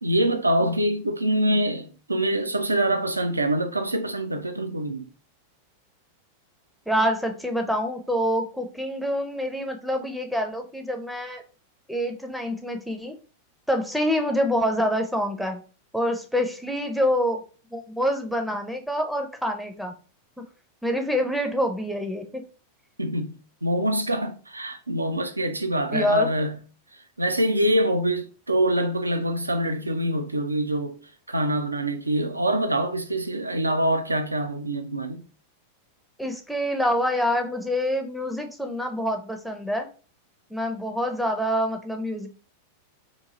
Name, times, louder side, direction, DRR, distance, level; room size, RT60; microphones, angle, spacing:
voice 1, 0.0-5.1 23.0-23.3 23.6-26.6 26.9-31.0 31.3-35.2, right 1 dB, 80° right, 0.4 m, -25 dB
voice 2, 6.9-11.4 11.9-13.2 13.7-15.6 15.9-17.4 17.7-20.0 20.4-20.5 20.8-22.4 25.9-26.3 36.2-39.9 40.5-42.3, equal, ahead, 0.5 m, -26 dB
2.9 x 2.6 x 3.7 m
figure-of-eight pair, 90°, 0 cm